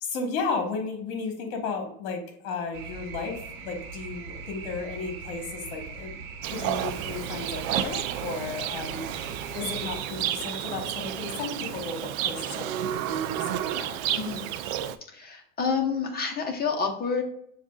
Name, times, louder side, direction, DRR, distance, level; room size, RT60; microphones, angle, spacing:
voice 1, 0.0-14.3, left 4 dB, 60° left, 3 dB, 1.3 m, -34 dB
sound 1, 2.7-10.0, right 5 dB, 50° right, 1.2 m, -40 dB
Livestock farm animals working animals, 6.4-15.0, right 11 dB, 70° right, 0.5 m, -31 dB
voice 2, 15.1-17.2, left 5 dB, 20° left, 2 dB, 1.0 m, -28 dB
7.1 x 2.5 x 2.3 m, 0.70 s
supercardioid pair, 115°, 42 cm